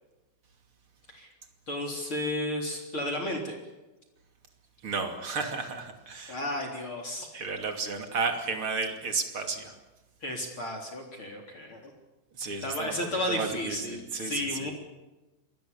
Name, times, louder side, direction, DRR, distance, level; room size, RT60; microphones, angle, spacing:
voice 1, 1.7-3.6 6.3-7.3 10.2-11.9 12.6-14.7, left 1 dB, 30° left, 2 dB, 3.9 m, -33 dB
voice 2, 4.8-6.4 7.3-9.8 12.4-12.9 13.3-14.7, right 4 dB, 35° right, 5 dB, 2.5 m, -33 dB
27.5 x 22.0 x 7.1 m, 1.1 s
omnidirectional pair, 5.5 m